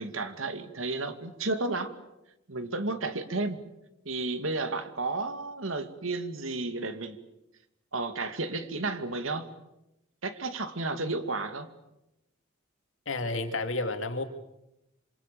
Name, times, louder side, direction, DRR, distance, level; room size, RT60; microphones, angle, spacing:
voice 1, 0.0-1.9 2.5-3.6 4.1-7.2 7.9-9.5 10.2-11.7, right 3 dB, 85° right, 10 dB, 2.4 m, -32 dB
voice 2, 13.1-14.2, left 2 dB, 70° left, 6 dB, 3.0 m, -31 dB
27.5 x 26.5 x 7.0 m, 0.89 s
head